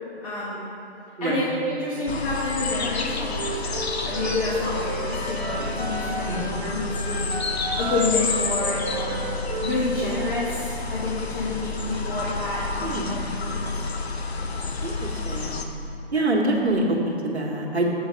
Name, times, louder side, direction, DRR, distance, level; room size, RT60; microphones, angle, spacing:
voice 1, 0.2-0.6 1.2-3.8 4.0-9.2 9.6-13.8, left 2 dB, 35° left, -9 dB, 1.5 m, -29 dB
voice 2, 1.2-1.5 6.3-6.5 12.8-13.2 14.8-15.7 16.1-17.9, right 1 dB, 85° right, -1 dB, 1.4 m, -25 dB
sound 1, 2.1-15.6, left 4 dB, 75° left, 0.8 m, -30 dB
Wind instrument woodwind instrument, 3.2-6.5 6.8-10.2, right 3 dB, 35° right, 1.1 m, -34 dB
7.9 x 4.0 x 6.4 m, 3.0 s
figure-of-eight pair, 140°, 32 cm